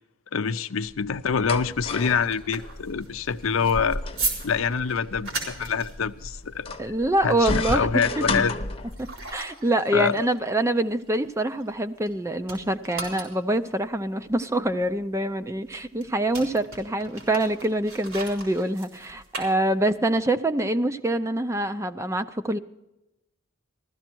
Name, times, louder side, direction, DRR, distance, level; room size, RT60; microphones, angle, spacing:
voice 1, 0.3-4.0 4.4-6.7 7.2-8.5 9.9-10.3, left 6 dB, 80° left, 0.6 m, -25 dB
sound 1, 0.9-9.3, left 2 dB, 30° left, 0.9 m, -33 dB
sound 2, 1.6-12.1 12.4-20.1, right 3 dB, 80° right, 4.1 m, -38 dB
voice 2, 6.8-8.3 9.0-22.6, right 1 dB, 15° right, 0.5 m, -25 dB
15.5 x 13.0 x 4.5 m
head